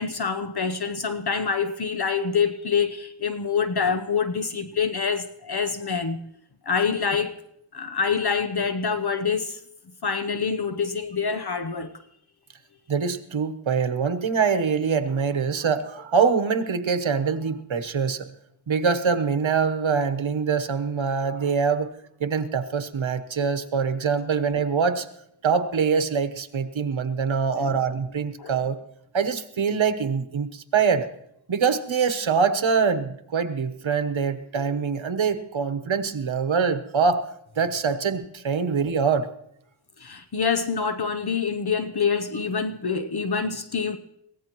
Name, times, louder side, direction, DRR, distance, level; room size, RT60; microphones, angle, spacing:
voice 1, 0.0-6.2 6.6-7.3 7.7-9.6 10.0-11.9 27.5-27.8 28.4-28.5 40.0-44.0, left 5 dB, 55° left, 10 dB, 0.8 m, -26 dB
voice 2, 12.9-18.3 18.7-21.9 22.2-25.1 25.4-28.8 29.1-31.1 31.5-37.2 37.6-39.3, right 6 dB, 70° right, 9 dB, 1.1 m, -24 dB
23.0 x 17.0 x 3.0 m, 0.75 s
wide cardioid pair, 65°, 48 cm